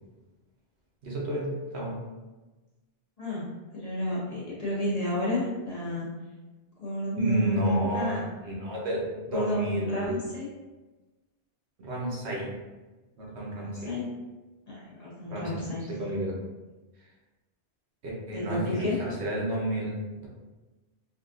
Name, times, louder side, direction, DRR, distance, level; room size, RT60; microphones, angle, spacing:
voice 1, 1.0-2.0 7.2-8.1 8.4-10.2 11.8-12.5 13.2-13.9 15.3-16.3 18.0-20.0, right 1 dB, 75° right, -4 dB, 1.1 m, -30 dB
voice 2, 3.7-6.1 6.8-8.2 9.3-10.5 13.6-14.1 14.7-15.8 18.3-19.0, left 1 dB, 40° left, -8 dB, 0.8 m, -31 dB
3.5 x 2.3 x 2.4 m, 1.2 s
omnidirectional pair, 1.2 m